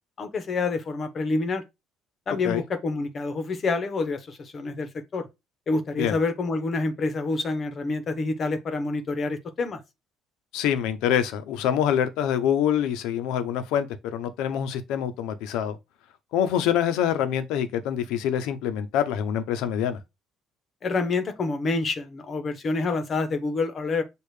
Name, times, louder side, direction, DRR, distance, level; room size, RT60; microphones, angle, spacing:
voice 1, 0.2-1.6 2.3-5.3 5.7-9.8 20.8-24.0, left 3 dB, 40° left, 0.9 m, -27 dB
voice 2, 10.5-15.8 16.3-20.0, left 9 dB, 80° left, 0.7 m, -25 dB
6.6 x 2.5 x 3.3 m
cardioid pair, 105°, 0 cm